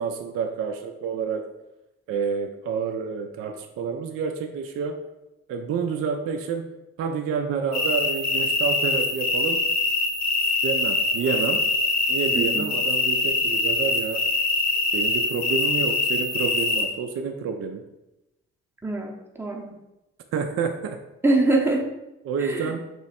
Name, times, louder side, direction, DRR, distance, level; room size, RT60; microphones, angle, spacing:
voice 1, 0.0-1.5 2.1-5.0 5.5-6.7 7.0-9.6 10.6-11.6 12.1-14.3 14.9-17.8 20.3-21.0 22.2-22.9, right 6 dB, 40° right, 5 dB, 0.4 m, -28 dB
sound 1, 7.7-16.8, left 2 dB, 45° left, 0.9 m, -24 dB
voice 2, 12.3-12.7 18.8-19.8 21.2-21.9 22.4-22.7, right 2 dB, 5° right, 0 dB, 0.8 m, -24 dB
3.0 x 3.0 x 4.1 m, 0.94 s
figure-of-eight pair, 40°, 36 cm